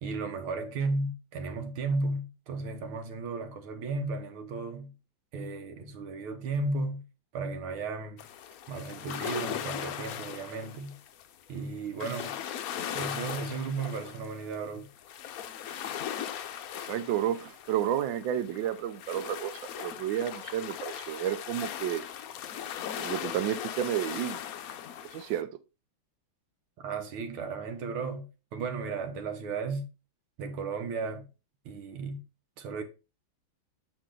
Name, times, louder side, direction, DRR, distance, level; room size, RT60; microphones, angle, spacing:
voice 1, 0.0-4.9 5.3-7.0 7.3-8.2 8.7-11.0 11.5-12.4 12.9-14.9 26.8-29.9 30.4-31.3 31.7-32.2 32.6-32.8, right 3 dB, 90° right, 2.0 m, -34 dB
sound 1, 8.2-25.4, left 10 dB, 75° left, 0.8 m, -39 dB
voice 2, 16.8-19.5 19.8-22.0 23.0-24.4 25.1-25.5, right 10 dB, 75° right, 1.3 m, -31 dB
7.4 x 4.9 x 3.8 m
omnidirectional pair, 2.3 m